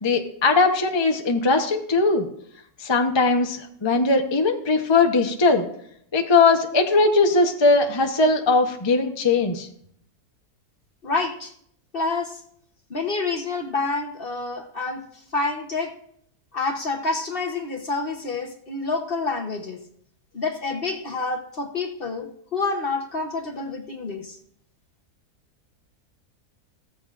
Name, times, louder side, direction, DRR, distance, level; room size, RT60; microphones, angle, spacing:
voice 1, 0.0-2.2 2.8-5.6 6.1-9.7, left 3 dB, 20° left, 3 dB, 0.8 m, -20 dB
voice 2, 11.0-11.5 11.9-12.4 12.9-15.9 16.5-19.8 20.3-24.4, left 3 dB, 40° left, 3 dB, 1.1 m, -28 dB
15.5 x 14.0 x 2.5 m, 0.69 s
omnidirectional pair, 1.6 m